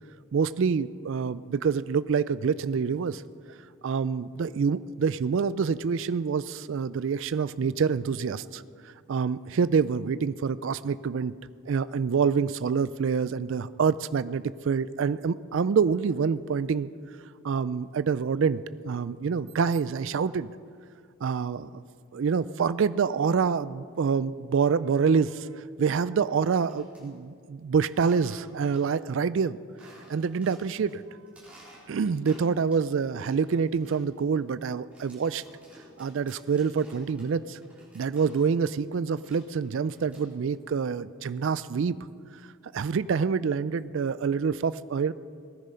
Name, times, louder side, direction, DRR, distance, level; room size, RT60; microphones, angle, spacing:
voice 1, 0.3-3.2 3.8-8.6 9.1-11.3 11.7-16.9 17.4-20.5 21.2-21.8 22.1-29.6 30.1-31.0 31.9-35.4 36.0-37.6 37.9-42.0 42.7-45.1, right 6 dB, 60° right, 16 dB, 0.3 m, -26 dB
sound 1, 26.3-27.0 27.9-29.0 29.3-29.4 29.8-30.9 31.3-32.9 33.2-38.7 38.9-40.5, right 1 dB, 5° right, 4.0 m, -53 dB
18.5 x 10.0 x 5.6 m, 2.1 s
head